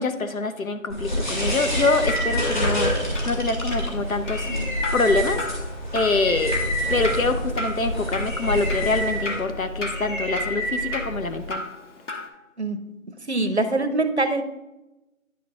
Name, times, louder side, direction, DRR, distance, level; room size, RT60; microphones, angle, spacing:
voice 1, 0.0-4.5 4.9-5.4 5.9-6.6 6.9-11.6, left 3 dB, 75° left, 8 dB, 0.9 m, -25 dB
sound 1, 0.9-11.5, equal, 35° left, 2.2 m, -27 dB
Drip, 1.7-12.3, left 2 dB, 60° left, 1.2 m, -36 dB
voice 2, 13.3-14.4, right 2 dB, 50° right, 10 dB, 0.7 m, -23 dB
9.8 x 4.8 x 3.6 m, 1.0 s
figure-of-eight pair, 175°, 42 cm